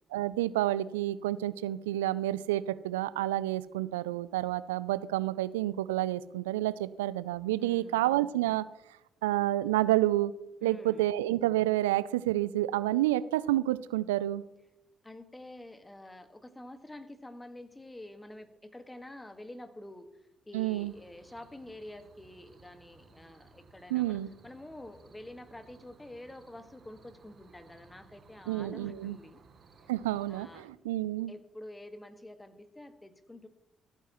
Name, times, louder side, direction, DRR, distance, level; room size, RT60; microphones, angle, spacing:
voice 1, 0.1-8.7 9.2-10.3 10.6-14.4 20.5-20.9 23.9-24.3 28.5-29.2 29.9-31.3, right 15 dB, 85° right, 17 dB, 0.3 m, -29 dB
voice 2, 7.5-8.1 10.6-11.1 15.0-29.4 29.8-29.9 30.3-30.7 31.3-33.5, left 1 dB, 15° left, 9 dB, 1.7 m, -48 dB
sound 1, 20.7-30.6, right 4 dB, 50° right, 2.6 m, -59 dB
26.0 x 9.1 x 3.0 m, 0.92 s
hypercardioid pair, 40°, 0 cm